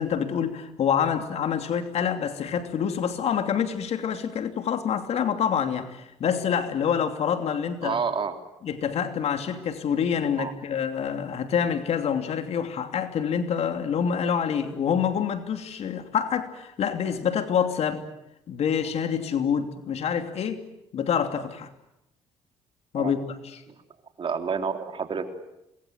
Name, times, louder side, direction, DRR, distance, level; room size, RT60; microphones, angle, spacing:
voice 1, 0.0-8.0 8.6-18.1 18.5-20.6 20.9-21.7 22.9-23.6, left 7 dB, 65° left, 8 dB, 2.9 m, -27 dB
voice 2, 7.8-8.4 10.4-10.5 22.9-23.1 23.7-23.8 24.2-25.3, right 6 dB, 45° right, 7 dB, 3.5 m, -29 dB
26.5 x 21.0 x 9.4 m, 0.86 s
supercardioid pair, 70°, 12 cm